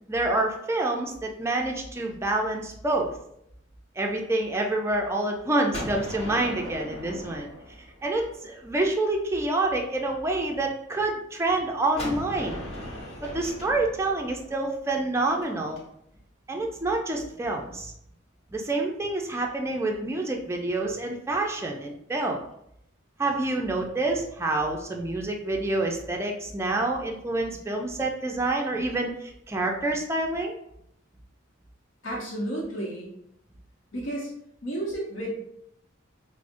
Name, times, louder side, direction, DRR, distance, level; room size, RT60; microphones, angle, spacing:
voice 1, 0.1-3.1 4.0-7.5 8.0-12.6 13.2-15.8 16.5-17.9 18.5-22.4 23.2-30.5, right 2 dB, 15° right, 1 dB, 0.4 m, -27 dB
Gunshot gunfire, 5.7-8.5 12.0-15.8, left 1 dB, 35° left, 1.1 m, -38 dB
voice 2, 32.0-33.1 33.9-34.3 34.6-35.3, right 1 dB, 75° left, -5 dB, 0.8 m, -32 dB
4.8 x 2.0 x 2.5 m, 0.75 s
head